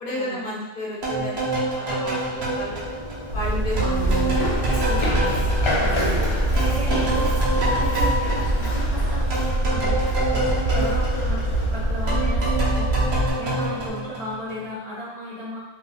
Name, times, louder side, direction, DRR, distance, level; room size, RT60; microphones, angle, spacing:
voice 1, 0.0-2.9 3.3-3.8 4.2-4.6, left 1 dB, 60° left, -4 dB, 0.8 m, -32 dB
sound 1, 1.0-6.3 6.6-14.7, right 1 dB, 90° right, 1.1 m, -28 dB
Run, 2.3-13.9, left 1 dB, 45° left, 0.4 m, -31 dB
sound 2, 3.3-13.3, right 1 dB, 60° right, 0.7 m, -24 dB
voice 2, 3.7-4.5 4.8-6.2 6.6-7.4 7.7-10.0 10.3-15.6, equal, 40° right, -10 dB, 1.1 m, -35 dB
3.6 x 2.7 x 2.2 m, 1.0 s
omnidirectional pair, 1.0 m